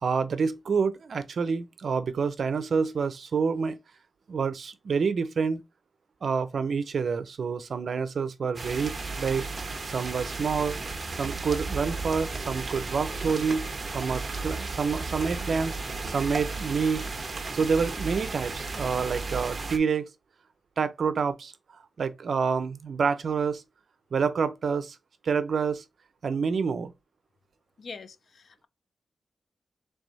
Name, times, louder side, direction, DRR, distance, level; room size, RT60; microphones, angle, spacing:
voice 1, 0.0-3.8 4.3-5.6 6.2-9.4 9.8-10.8 11.2-13.7 13.9-15.8 16.1-17.1 17.5-20.0 20.8-21.5 22.0-23.6 24.1-25.0 25.2-25.8 26.2-26.9, right 5 dB, 60° right, 0.6 m, -28 dB
sound 1, 8.6-19.8, right 3 dB, 35° right, 0.9 m, -34 dB
voice 2, 27.8-28.7, left 4 dB, 60° left, 0.4 m, -44 dB
3.5 x 3.3 x 4.0 m
wide cardioid pair, 120°, 0 cm